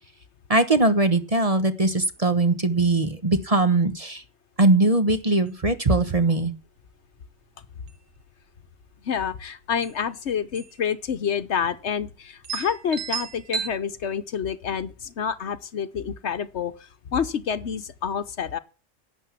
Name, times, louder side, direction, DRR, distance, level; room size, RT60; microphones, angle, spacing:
voice 1, 0.5-4.2 4.6-6.5, right 2 dB, 30° right, 1.1 m, -21 dB
sound 1, 5.5-5.6 5.8-5.9 6.3-6.7 7.2-7.4 7.7-8.4 9.5-9.6 9.8-10.0 10.6-10.9 11.1-11.2 11.9-12.0 12.4-13.7, right 7 dB, 75° right, 1.5 m, -33 dB
voice 2, 9.0-16.7 17.1-18.6, left 7 dB, 65° left, 1.1 m, -28 dB
12.0 x 8.3 x 7.2 m
omnidirectional pair, 1.3 m